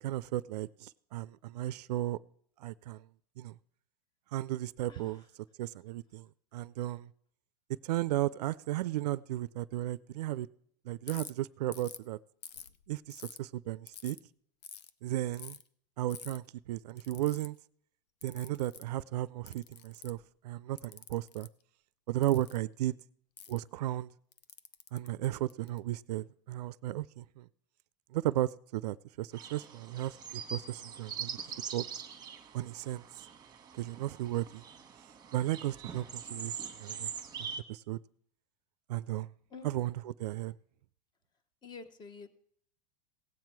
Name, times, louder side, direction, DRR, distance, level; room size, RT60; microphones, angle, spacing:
voice 1, 0.0-2.2 2.6-3.0 3.4-3.5 4.3-5.2 5.6-6.3 6.5-7.1 7.8-10.5 10.9-12.2 12.9-14.2 15.0-15.6 16.0-17.6 18.2-21.5 22.1-22.9 23.5-24.1 24.9-27.5 28.1-31.3 31.7-31.8 32.5-33.0 33.7-34.6 35.3-37.1 37.7-38.0 38.9-39.3 39.6-40.5, right 15 dB, 75° right, 0.4 m, -35 dB
Ratchet pawl, 11.1-11.3 11.7-12.0 12.4-13.4 13.9-14.2 14.6-14.9 15.3-15.6 16.1-16.4 17.0-17.5 18.2-18.9 19.5-20.2 20.8-21.5 22.2-22.6 23.4-23.6 24.3-25.8, left 9 dB, 80° left, 0.7 m, -47 dB
sound 1, 29.3-37.6, right 7 dB, 20° right, 1.2 m, -43 dB
voice 2, 41.6-42.3, left 4 dB, 20° left, 0.9 m, -47 dB
17.0 x 7.5 x 4.6 m
hypercardioid pair, 125°, 21 cm